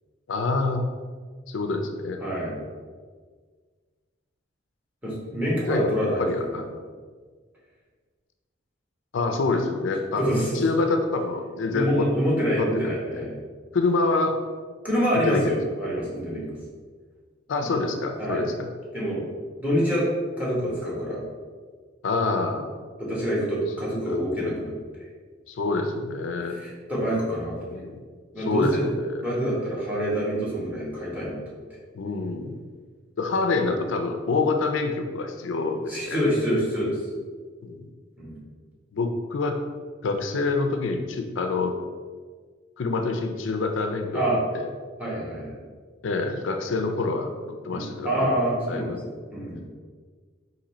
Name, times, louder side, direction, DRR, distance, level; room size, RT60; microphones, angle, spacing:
voice 1, 0.3-0.8 1.5-2.2 5.7-5.9 6.2-6.8 9.1-10.3 10.6-12.1 12.5-12.7 13.1-13.3 13.7-14.4 15.1-15.5 17.5-18.7 22.0-22.7 24.1-24.2 25.5-26.6 27.6-28.0 28.5-29.2 31.9-32.6 33.2-36.2 37.6-37.9 38.9-39.6 40.0-41.8 42.8-44.2 44.5-44.7 46.0-48.4 48.7-49.0, left 3 dB, 75° left, 5 dB, 0.4 m, -26 dB
voice 2, 2.2-2.6 5.0-6.5 10.2-10.6 11.7-13.3 14.8-16.5 18.2-18.5 18.9-19.3 19.6-20.1 20.4-21.2 23.0-25.1 26.5-27.7 28.3-28.9 29.2-31.4 35.9-37.0 38.2-38.4 44.1-44.4 45.0-45.6 47.7-49.0 49.3-49.6, equal, 10° right, -6 dB, 1.1 m, -26 dB
3.9 x 2.7 x 4.2 m, 1.5 s
head